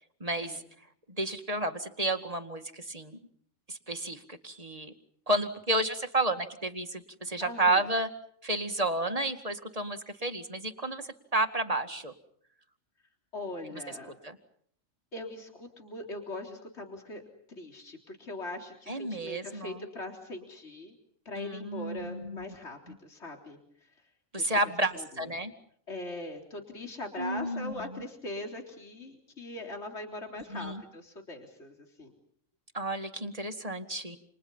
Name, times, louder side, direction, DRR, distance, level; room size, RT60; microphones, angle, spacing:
voice 1, 0.2-0.6 1.1-3.2 3.7-4.9 5.3-8.1 8.4-12.1 14.2-14.4 18.9-19.8 21.4-22.4 22.9-23.0 24.3-25.5 27.2-28.0 30.5-30.8 32.7-34.2, right 2 dB, 30° right, 7 dB, 2.2 m, -31 dB
voice 2, 7.4-7.9 13.3-14.2 15.1-17.2 17.6-20.9 21.3-23.6 24.4-24.5 24.9-25.1 25.9-32.1, left 2 dB, 55° left, 3 dB, 4.1 m, -41 dB
30.0 x 29.0 x 5.6 m, 0.64 s
omnidirectional pair, 1.3 m